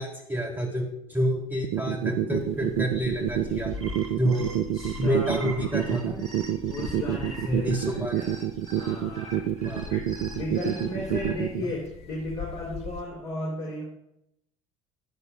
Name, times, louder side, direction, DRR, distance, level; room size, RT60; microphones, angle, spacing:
voice 1, 0.0-3.7 4.2-4.5 5.0-6.2 7.5-8.3 9.6-9.9, equal, 10° right, 0 dB, 3.2 m, -28 dB
sound 1, 1.6-11.6, right 11 dB, 45° right, 0.5 m, -27 dB
sound 2, 2.4-13.0, left 5 dB, 35° left, 1.1 m, -43 dB
sound 3, 3.6-11.3, right 2 dB, 85° left, 3.3 m, -44 dB
voice 2, 4.7-5.8 6.7-7.7 7.9-8.2 8.8-9.3 9.9-13.8, left 2 dB, 55° left, -4 dB, 3.8 m, -35 dB
21.5 x 8.0 x 2.5 m, 0.79 s
figure-of-eight pair, 65°, 18 cm